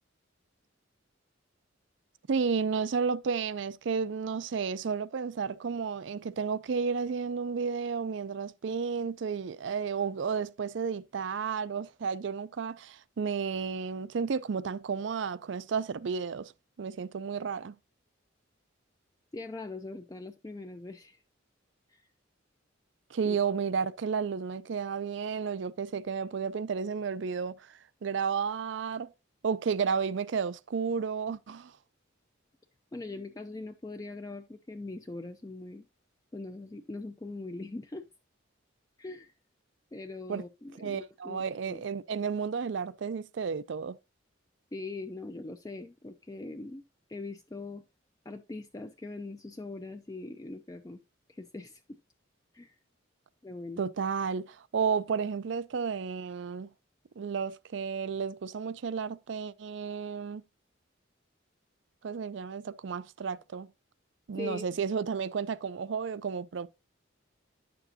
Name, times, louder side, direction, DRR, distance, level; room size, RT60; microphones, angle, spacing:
voice 1, 2.3-16.5 16.8-17.8 23.1-29.1 29.4-31.7 40.3-40.4 40.8-44.0 53.8-56.7 57.2-60.4 62.0-63.7 64.3-66.7, right 6 dB, 65° right, 0.4 m, -32 dB
voice 2, 19.3-21.2 21.9-22.1 23.2-23.4 32.9-35.8 36.3-38.1 39.0-39.3 39.9-41.8 44.7-46.8 47.1-47.8 48.3-51.0 51.3-52.0 52.5-52.7 53.4-53.8 64.3-64.7, left 2 dB, 20° left, 0.4 m, -41 dB
9.8 x 6.9 x 2.7 m
head